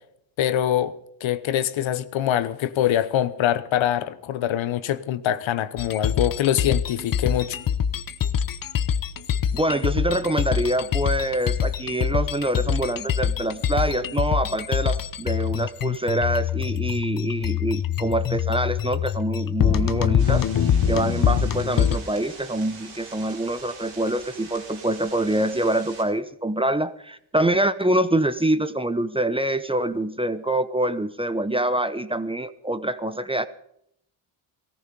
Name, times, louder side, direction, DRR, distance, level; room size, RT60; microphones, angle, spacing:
voice 1, 0.4-0.9 1.2-7.6, left 11 dB, 65° left, 1.0 m, -24 dB
sound 1, 5.8-22.0, left 8 dB, 40° left, 0.9 m, -24 dB
voice 2, 9.5-20.4 20.9-33.5, right 1 dB, 10° right, 0.8 m, -25 dB
sound 2, 20.2-26.0, right 4 dB, 90° right, 5.0 m, -43 dB
17.0 x 14.0 x 5.4 m
cardioid pair, 75°, 49 cm